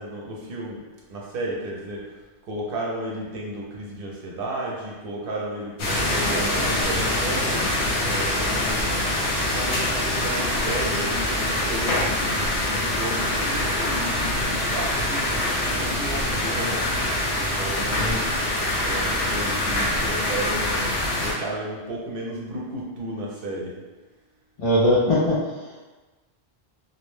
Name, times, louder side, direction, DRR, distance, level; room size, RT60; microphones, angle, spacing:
voice 1, 0.0-2.2 2.5-9.1 9.5-17.1 17.4-18.2 18.8-23.7, right 1 dB, 60° right, -3 dB, 0.7 m, -33 dB
sound 1, 5.8-21.3, left 1 dB, 75° left, 0.9 m, -24 dB
voice 2, 24.6-25.8, left 1 dB, 60° left, -7 dB, 0.3 m, -21 dB
2.6 x 2.0 x 3.1 m, 1.2 s
omnidirectional pair, 1.1 m